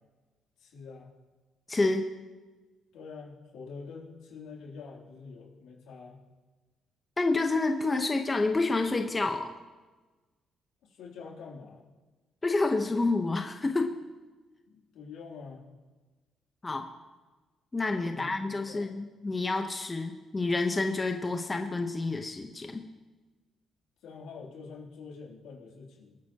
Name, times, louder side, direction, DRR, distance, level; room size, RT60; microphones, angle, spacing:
voice 1, 0.6-1.1 2.9-6.2 10.8-11.8 14.7-15.6 18.1-18.3 18.7-18.9 24.0-26.2, left 5 dB, 85° left, -2 dB, 3.1 m, -46 dB
voice 2, 1.7-2.1 7.2-9.5 12.4-14.0 16.6-16.9 17.7-22.8, left 3 dB, 25° left, 4 dB, 1.0 m, -28 dB
25.5 x 9.2 x 3.0 m, 1.2 s
cardioid pair, 90°, 0 cm